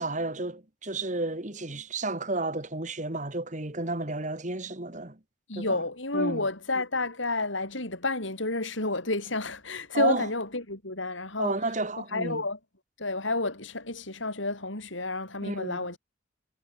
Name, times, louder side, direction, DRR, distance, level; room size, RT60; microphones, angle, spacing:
voice 1, 0.0-5.2 5.6-5.8 6.1-6.4 9.9-10.3 11.4-12.4 15.4-15.9, right 2 dB, 40° right, 2.3 m, -32 dB
voice 2, 5.5-11.5 12.1-12.6 13.0-16.0, left 2 dB, 80° left, 6.5 m, -30 dB
head